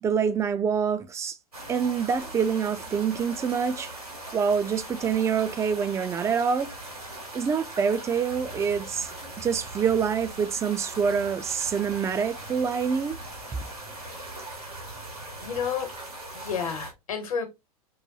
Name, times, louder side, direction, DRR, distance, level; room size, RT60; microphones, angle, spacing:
voice 1, 0.0-1.4 1.7-3.9 4.3-6.7 7.3-9.1 9.4-13.2, right 6 dB, 15° right, 0.4 m, -26 dB
sound 1, 1.5-16.9, right 2 dB, 85° right, 1.9 m, -40 dB
voice 2, 15.4-15.9 16.3-17.5, left 7 dB, 65° left, 1.1 m, -30 dB
5.4 x 2.2 x 2.6 m
figure-of-eight pair, 85°, 19 cm